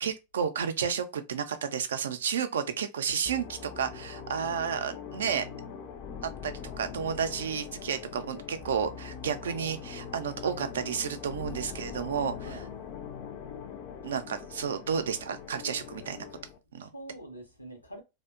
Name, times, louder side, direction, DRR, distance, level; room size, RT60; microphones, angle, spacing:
voice 1, 0.0-5.5 6.2-12.6 14.0-16.2 16.7-16.9, right 7 dB, 65° right, 0.4 m, -32 dB
sound 1, 3.3-16.6, left 7 dB, 40° left, 0.4 m, -42 dB
voice 2, 4.3-4.6 12.4-12.7 16.8-18.0, right 1 dB, 85° left, 0.7 m, -45 dB
2.7 x 2.1 x 2.3 m
figure-of-eight pair, 90°, 0 cm